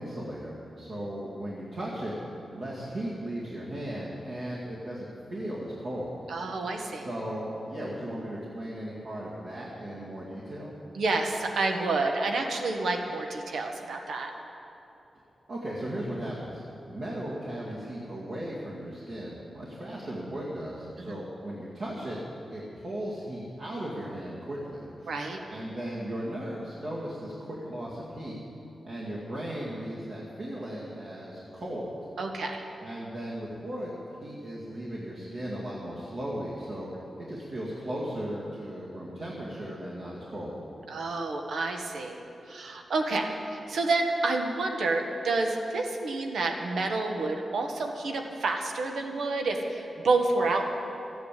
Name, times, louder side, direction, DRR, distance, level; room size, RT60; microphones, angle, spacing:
voice 1, 0.0-2.1 2.5-6.1 7.0-10.7 15.5-16.6 16.9-22.2 22.5-25.1 25.5-28.4 28.8-32.0 32.8-36.9 37.2-40.5, right 1 dB, 60° right, -7 dB, 2.2 m, -36 dB
voice 2, 6.3-7.1 10.9-14.3 21.0-21.1 25.1-25.4 32.2-32.6 40.9-42.2 42.5-50.6, right 3 dB, 90° right, 3 dB, 1.4 m, -29 dB
14.0 x 9.5 x 8.4 m, 2.9 s
wide cardioid pair, 150°, 0 cm